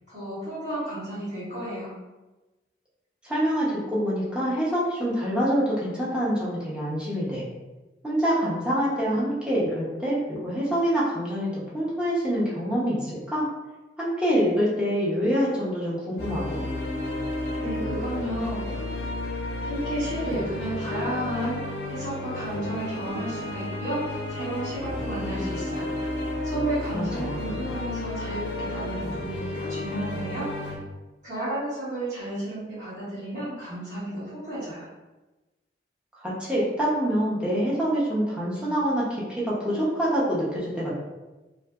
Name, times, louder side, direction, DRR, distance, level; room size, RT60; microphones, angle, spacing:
voice 1, 0.1-1.9 17.6-18.8 19.6-26.1 26.4-30.8 31.2-34.9, right 1 dB, 40° right, -13 dB, 1.4 m, -32 dB
voice 2, 3.2-7.4 8.0-13.5 14.0-16.6 26.9-27.4 36.1-40.9, equal, 5° right, -8 dB, 0.6 m, -26 dB
sound 1, 16.2-30.8, left 2 dB, 75° left, 0.4 m, -32 dB
2.6 x 2.6 x 2.2 m, 1.1 s
head